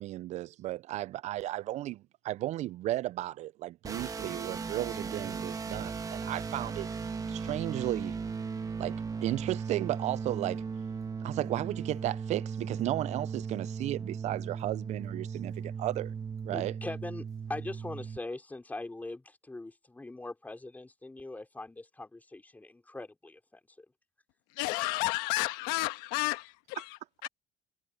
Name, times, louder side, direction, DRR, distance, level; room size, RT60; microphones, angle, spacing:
voice 1, 0.0-6.9 7.3-8.2 8.8-10.7 11.2-16.1 16.4-16.8, right 15 dB, 50° right, 0.4 m, -34 dB
sound 1, 3.8-18.2, right 5 dB, 25° right, 1.4 m, -37 dB
voice 2, 16.5-23.9, left 2 dB, 10° left, 3.8 m, -42 dB
voice 3, 24.5-27.3, left 20 dB, 85° left, 1.4 m, -32 dB
cardioid pair, 115°, 15 cm